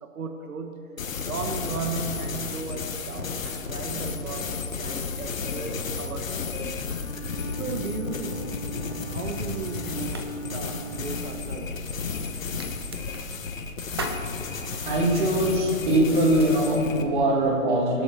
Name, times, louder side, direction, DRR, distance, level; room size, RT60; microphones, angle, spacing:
voice 1, 0.0-0.9 1.2-7.0 7.5-8.5 9.1-11.9, right 4 dB, 85° right, 6 dB, 1.7 m, -36 dB
sound 1, 1.0-17.1, left 5 dB, 65° left, 1.7 m, -33 dB
Wind instrument woodwind instrument, 6.9-11.5, right 4 dB, 15° left, 1.4 m, -40 dB
sound 2, 9.0-16.6, right 3 dB, 20° right, 0.7 m, -42 dB
voice 2, 14.3-18.0, right 1 dB, 35° right, 0 dB, 3.0 m, -23 dB
23.5 x 12.0 x 4.4 m, 2.5 s
hypercardioid pair, 170°, 42 cm